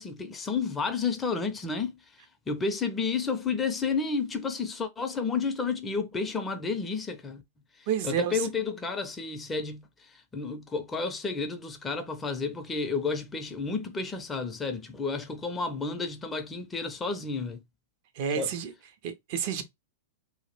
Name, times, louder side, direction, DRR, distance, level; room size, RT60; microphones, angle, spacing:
voice 1, 0.0-1.9 2.5-7.4 7.8-17.6 18.4-18.5, left 4 dB, 20° left, 0.5 m, -31 dB
voice 2, 7.9-8.5 18.2-18.7 19.0-19.6, right 8 dB, 55° right, 0.5 m, -30 dB
2.2 x 2.0 x 3.0 m
hypercardioid pair, 105°, 0 cm